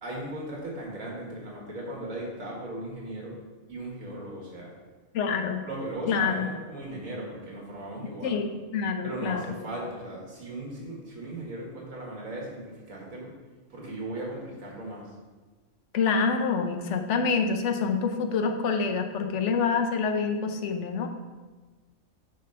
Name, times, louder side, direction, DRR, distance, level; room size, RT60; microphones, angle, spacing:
voice 1, 0.0-3.4 3.7-4.7 5.2-5.3 5.6-8.3 9.0-13.3 13.7-15.1, right 1 dB, 85° right, -2 dB, 2.1 m, -37 dB
voice 2, 5.1-5.6 6.1-6.5 8.2-9.5 15.9-21.1, left 5 dB, 65° left, 6 dB, 1.0 m, -26 dB
6.3 x 4.2 x 5.5 m, 1.3 s
omnidirectional pair, 1.4 m